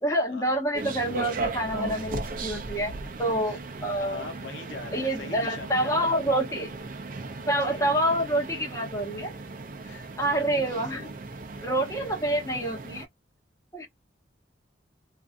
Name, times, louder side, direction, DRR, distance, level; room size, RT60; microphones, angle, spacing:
voice 1, 0.0-2.9 3.2-4.2 4.9-6.7 7.5-9.3 10.2-11.0 11.6-13.1 13.7-13.9, right 1 dB, 15° left, 0.8 m, -27 dB
sound 1, 0.7-13.0, right 3 dB, 45° right, 0.5 m, -37 dB
voice 2, 3.9-6.1 7.6-8.0 9.8-11.2, left 3 dB, 65° left, 0.8 m, -42 dB
2.5 x 2.2 x 2.5 m
head